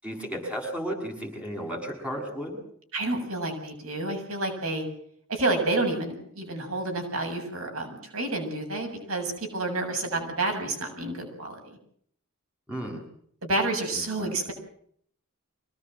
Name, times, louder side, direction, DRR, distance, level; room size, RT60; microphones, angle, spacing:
voice 1, 0.0-2.6 10.1-10.3 12.7-13.0 13.9-14.5, equal, 5° right, 1 dB, 7.7 m, -34 dB
voice 2, 2.9-4.9 5.3-11.6 13.4-14.5, right 2 dB, 75° right, 4 dB, 7.3 m, -29 dB
25.0 x 18.5 x 7.8 m, 0.64 s
head